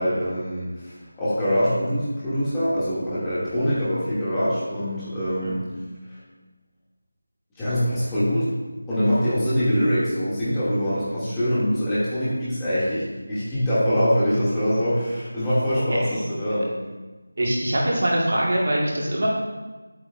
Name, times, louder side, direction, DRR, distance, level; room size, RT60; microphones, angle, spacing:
voice 1, 0.0-5.7 6.1-6.2 7.6-8.5 8.9-16.7, equal, 10° left, -13 dB, 2.6 m, -24 dB
voice 2, 17.4-19.3, right 1 dB, 50° right, -4 dB, 1.8 m, -23 dB
9.9 x 8.5 x 2.6 m, 1.2 s
figure-of-eight pair, 165°, 0 cm